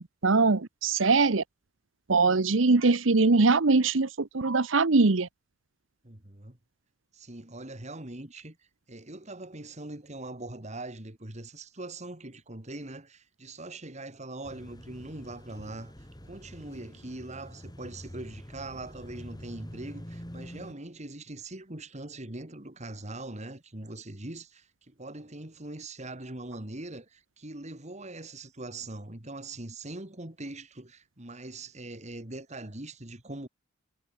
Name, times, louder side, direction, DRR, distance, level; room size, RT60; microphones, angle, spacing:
voice 1, 0.2-1.4 2.1-5.3, right 3 dB, 80° right, 1.0 m, -22 dB
voice 2, 6.0-6.6 7.1-8.6 8.9-33.5, right 2 dB, 35° right, 2.5 m, -42 dB
sound 1, 14.4-20.7, equal, 20° left, 7.2 m, -46 dB
head